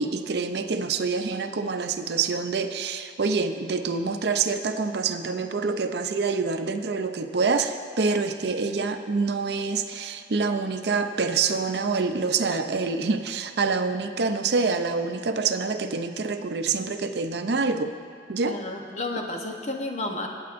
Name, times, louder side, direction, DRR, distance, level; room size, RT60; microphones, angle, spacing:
voice 1, 0.0-17.9 18.3-18.6, right 4 dB, 65° right, 8 dB, 0.5 m, -26 dB
voice 2, 18.4-20.3, left 2 dB, 40° left, 2 dB, 0.9 m, -31 dB
23.0 x 8.6 x 2.6 m, 2.2 s
head